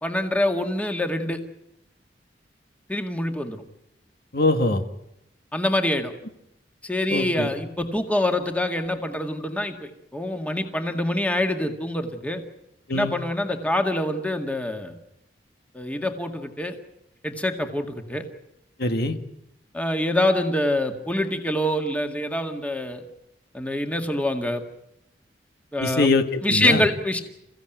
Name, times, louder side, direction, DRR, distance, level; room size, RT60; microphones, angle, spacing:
voice 1, 0.0-1.4 2.9-3.6 5.5-6.1 6.8-12.4 12.9-15.0 15.7-16.8 17.2-18.3 19.7-23.0 23.5-24.6 25.7-26.1 26.4-27.2, left 1 dB, 10° left, 5 dB, 1.9 m, -25 dB
voice 2, 4.3-4.8 7.1-7.5 12.9-13.1 18.8-19.2 25.8-26.8, left 2 dB, 60° left, 7 dB, 1.7 m, -23 dB
28.5 x 16.0 x 9.2 m, 0.84 s
head